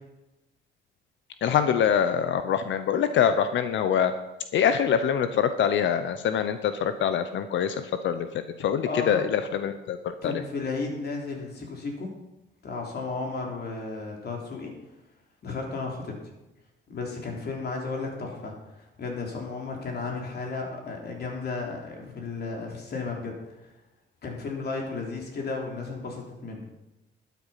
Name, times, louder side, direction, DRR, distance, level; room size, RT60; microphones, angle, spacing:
voice 1, 1.4-4.1 4.5-8.3 8.6-10.4, left 8 dB, 70° left, 10 dB, 0.8 m, -24 dB
voice 2, 8.8-9.2 10.2-12.1 12.6-14.7 15.4-16.1 16.9-18.5 19.0-23.3 23.6-23.7 24.2-26.7, left 3 dB, 55° left, 0 dB, 3.5 m, -33 dB
12.0 x 9.4 x 5.8 m, 0.98 s
cardioid pair, 90°, 20 cm